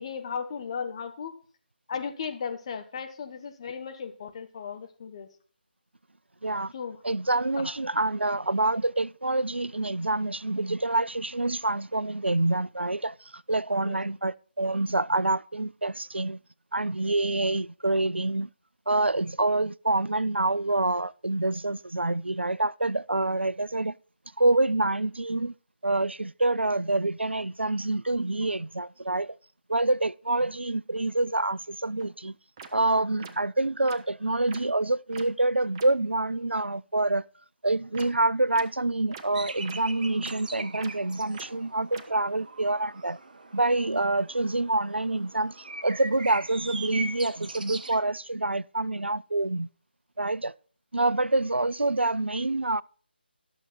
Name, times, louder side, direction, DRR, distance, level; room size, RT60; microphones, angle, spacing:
voice 1, 0.0-1.3 1.9-5.3 6.7-7.0 7.6-7.7 13.8-14.0, left 6 dB, 30° left, 1.0 m, -36 dB
voice 2, 6.4-6.7 7.0-16.4 16.7-18.5 18.9-24.0 24.4-25.5 25.8-29.4 29.7-32.4 32.7-37.2 37.6-43.2 43.5-49.7 50.2-50.5 50.9-52.8, right 2 dB, 85° right, 0.3 m, -27 dB
sound 1, 32.0-32.1 32.6-32.7 33.2-33.3 33.9-34.0 34.5-34.6 35.1-35.2 35.8-35.9 37.9-38.1 38.5-38.6 39.1-39.2 39.7-39.8 40.2-40.3 40.8-40.9 41.3-41.5 41.9-42.0, right 6 dB, 20° right, 0.8 m, -42 dB
sound 2, 39.3-48.0, right 2 dB, 50° right, 1.0 m, -41 dB
11.5 x 6.9 x 4.3 m
figure-of-eight pair, 150°, 6 cm